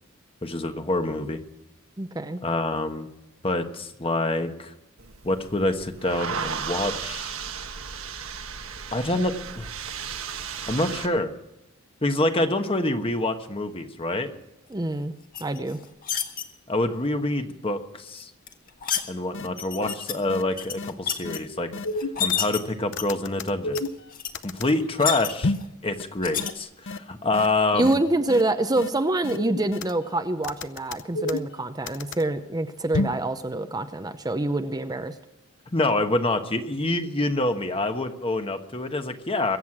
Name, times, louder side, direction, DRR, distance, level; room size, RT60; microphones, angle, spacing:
voice 1, 0.4-1.4 2.4-3.1 3.4-4.7 5.2-7.3 8.9-9.7 10.7-11.3 12.0-14.3 16.7-18.3 19.1-21.7 22.2-23.8 24.4-25.5 25.8-28.0 35.7-39.6, left 2 dB, 25° left, 7 dB, 1.2 m, -26 dB
voice 2, 2.0-2.4 14.7-15.1 15.4-15.8 27.7-35.1, right 2 dB, 20° right, 8 dB, 0.7 m, -26 dB
sound 1, 5.0-11.1, right 6 dB, 70° right, 1.3 m, -34 dB
sound 2, 15.3-16.4 18.2-19.1 19.6-20.1 20.5-21.4 21.9-22.6 23.0-23.4 23.7-23.8 24.1-24.3 24.6-25.6 26.2-26.5, left 8 dB, 40° left, 1.5 m, -29 dB
sound 3, 19.0-19.1 19.3-19.5 19.8-19.9 20.3-20.4 20.8-20.9 21.2-21.4 21.7-22.6 22.9-24.7 25.4-25.7 26.0-26.1 26.4-26.5 26.9-27.0 27.3-27.5 27.8-27.9 28.3-28.4 28.8-28.9 29.2-30.1 30.4-32.2 32.9-33.2, left 2 dB, 60° left, 0.7 m, -30 dB
23.0 x 8.3 x 6.1 m, 0.92 s
head